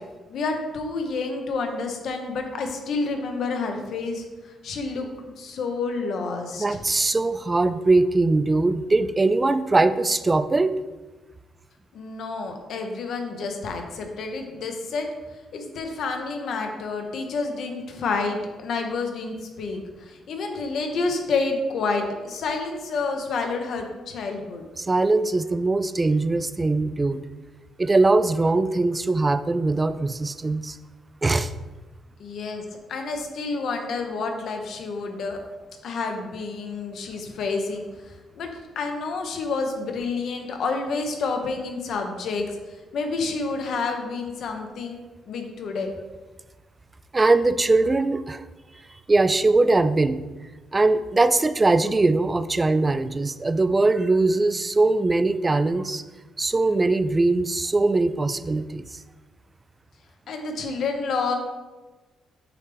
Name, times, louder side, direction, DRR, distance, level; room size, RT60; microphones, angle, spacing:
voice 1, 0.3-6.8 11.9-15.1 15.5-24.6 32.2-32.6 32.9-35.4 35.8-38.5 38.8-42.6 42.9-45.0 45.3-45.9 60.3-61.3, left 4 dB, 65° left, 4 dB, 0.9 m, -29 dB
voice 2, 6.6-10.8 24.8-27.2 27.8-30.8 31.2-31.5 47.1-48.4 49.1-50.2 50.7-56.0 56.4-58.8, right 2 dB, 20° right, 13 dB, 0.3 m, -21 dB
8.5 x 3.3 x 3.4 m, 1.2 s
cardioid pair, 90°, 0 cm